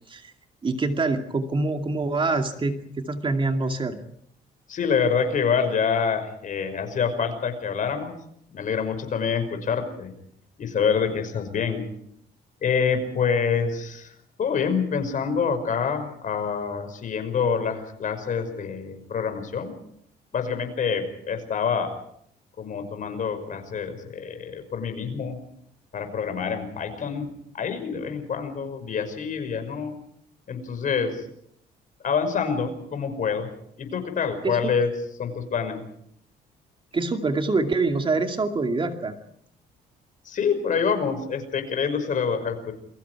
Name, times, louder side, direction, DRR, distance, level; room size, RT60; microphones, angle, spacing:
voice 1, 0.6-4.0 34.4-34.7 36.9-39.2, right 3 dB, 30° right, 5 dB, 2.4 m, -25 dB
voice 2, 4.7-8.2 8.5-10.1 10.6-11.9 12.6-19.7 20.3-21.9 22.6-25.4 25.9-29.9 30.5-31.3 32.0-33.5 33.8-34.9 35.2-35.8 40.2-42.7, left 6 dB, 50° left, 7 dB, 5.7 m, -26 dB
29.0 x 23.0 x 4.8 m, 0.68 s
cardioid pair, 105°, 17 cm